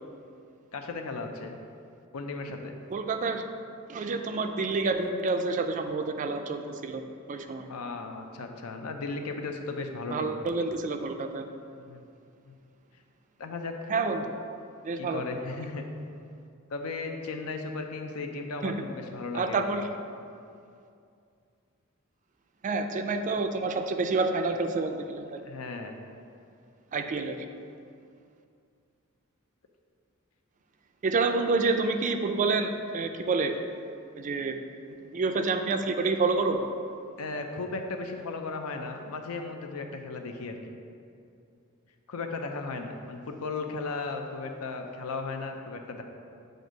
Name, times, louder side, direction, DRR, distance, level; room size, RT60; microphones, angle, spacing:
voice 1, 0.7-1.6 2.1-2.8 7.7-10.4 11.7-12.0 12.4-12.5 13.4-13.9 15.0-15.8 16.7-19.8 25.4-26.0 37.2-40.6 42.1-46.0, left 3 dB, 85° left, 5 dB, 0.5 m, -36 dB
voice 2, 2.9-3.4 3.9-7.0 7.3-7.7 10.1-11.5 13.9-14.3 14.8-15.2 18.6-18.8 19.3-19.9 22.6-25.4 26.9-27.4 31.0-33.6 34.1-34.6 34.9-36.6, right 3 dB, 35° right, 6 dB, 0.3 m, -28 dB
7.8 x 2.6 x 5.0 m, 2.4 s
head